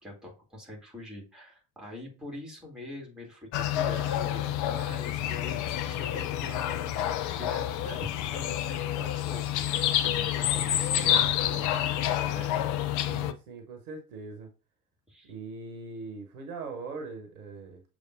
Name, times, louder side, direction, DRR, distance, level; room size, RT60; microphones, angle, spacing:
voice 1, 0.0-12.6 15.1-15.3, left 1 dB, ahead, 2.1 m, -44 dB
sound 1, 3.5-13.3, left 11 dB, 40° left, 0.5 m, -28 dB
voice 2, 13.1-14.5 15.2-17.8, right 3 dB, 65° right, 1.0 m, -41 dB
6.5 x 3.2 x 2.5 m
figure-of-eight pair, 60°, 46 cm